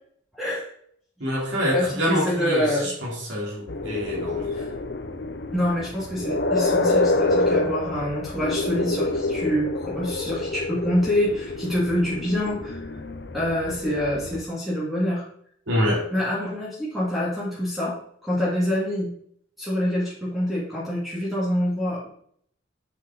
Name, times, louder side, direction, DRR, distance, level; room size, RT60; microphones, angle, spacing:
voice 1, 0.4-0.7 1.7-2.9 4.5-4.7 5.5-13.0 13.3-15.2 16.1-18.0 18.2-19.1 19.6-22.1, left 1 dB, ahead, -7 dB, 2.4 m, -26 dB
voice 2, 1.2-4.5 15.7-16.1, equal, 70° right, -4 dB, 3.6 m, -26 dB
sound 1, 3.7-14.4, left 2 dB, 60° left, 0.7 m, -27 dB
7.8 x 6.1 x 4.0 m, 0.65 s
head